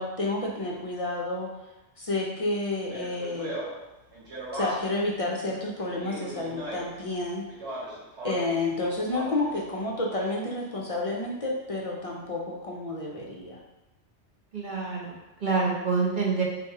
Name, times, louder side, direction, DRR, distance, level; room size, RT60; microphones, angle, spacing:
voice 1, 0.0-1.5 2.0-3.5 4.5-7.4 8.2-13.6, left 2 dB, 45° left, -2 dB, 0.4 m, -30 dB
Speech, 2.8-5.0 5.8-7.0 7.5-8.6 8.9-9.6, right 1 dB, 70° right, 1.8 m, -38 dB
voice 2, 14.5-16.4, right 4 dB, 45° right, -3 dB, 0.9 m, -27 dB
3.4 x 2.9 x 4.6 m, 1.0 s
omnidirectional pair, 1.2 m